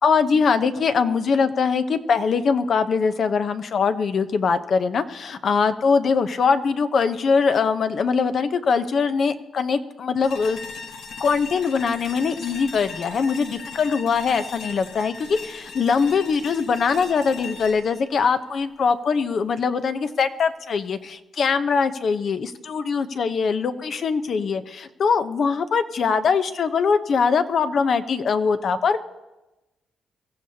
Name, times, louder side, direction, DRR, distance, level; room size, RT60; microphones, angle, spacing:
voice 1, 0.0-10.6 11.2-29.0, left 5 dB, 55° left, 10 dB, 0.8 m, -22 dB
sound 1, 10.2-19.3, left 5 dB, 85° left, 1.4 m, -39 dB
23.5 x 15.0 x 2.8 m, 1.0 s
cardioid pair, 105°, 0 cm